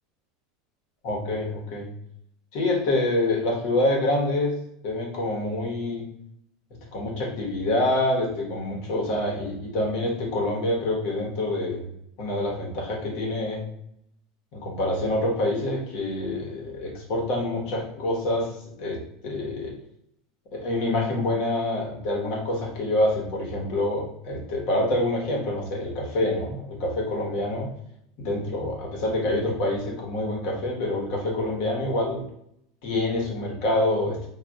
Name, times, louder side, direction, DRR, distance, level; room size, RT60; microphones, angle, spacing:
voice 1, 1.0-1.9 2.5-4.6 4.8-6.0 6.9-11.9 12.2-13.6 14.5-18.5 18.8-19.7 20.5-27.7 28.2-32.2 32.8-34.3, left 1 dB, 60° left, -1 dB, 1.0 m, -26 dB
3.8 x 2.3 x 2.3 m, 0.74 s
supercardioid pair, 130°, 0 cm